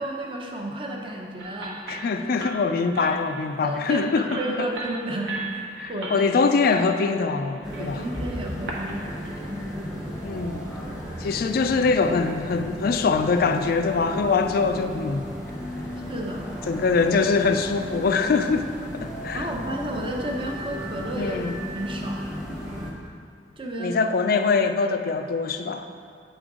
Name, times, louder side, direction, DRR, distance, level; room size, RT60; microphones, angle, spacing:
voice 1, 0.0-2.1 3.6-6.1 7.8-9.5 16.1-16.5 19.3-21.5 21.7-22.4 23.6-24.0, right 1 dB, 30° right, 0 dB, 0.7 m, -32 dB
sound 1, 1.4-8.9, right 2 dB, 80° right, 1.0 m, -38 dB
voice 2, 1.9-4.7 5.8-8.0 10.2-10.6 11.2-15.3 16.7-18.7 18.9-19.5 21.2-21.5 23.8-25.9, left 4 dB, 55° left, 8 dB, 0.4 m, -23 dB
sound 2, 7.6-22.9, equal, 5° right, 0.9 m, -35 dB
7.7 x 5.2 x 3.6 m, 2.3 s
head